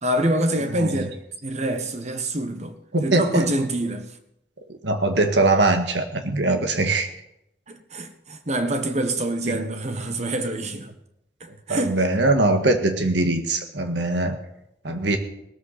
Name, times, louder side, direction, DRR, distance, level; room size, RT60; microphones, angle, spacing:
voice 1, 0.0-1.2 1.4-2.7 3.0-4.1 7.7-10.9 11.7-12.0, right 1 dB, 40° right, 1.3 m, -25 dB
voice 2, 0.7-1.1 2.9-3.5 4.8-7.1 9.5-9.6 11.7-14.4 14.8-15.2, right 2 dB, 85° right, 1.9 m, -22 dB
18.5 x 13.5 x 4.2 m
head